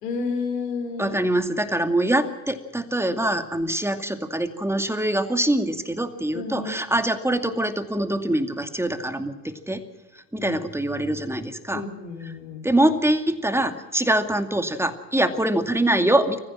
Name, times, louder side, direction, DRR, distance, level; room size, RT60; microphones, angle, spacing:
voice 1, 0.0-1.2 6.3-6.7 10.4-10.6 11.7-12.6, left 4 dB, 80° left, 4 dB, 4.3 m, -31 dB
voice 2, 1.0-9.8 10.1-11.8 12.6-16.4, right 1 dB, 5° right, 8 dB, 2.3 m, -24 dB
26.5 x 15.0 x 7.5 m, 1.2 s
hypercardioid pair, 60°, 47 cm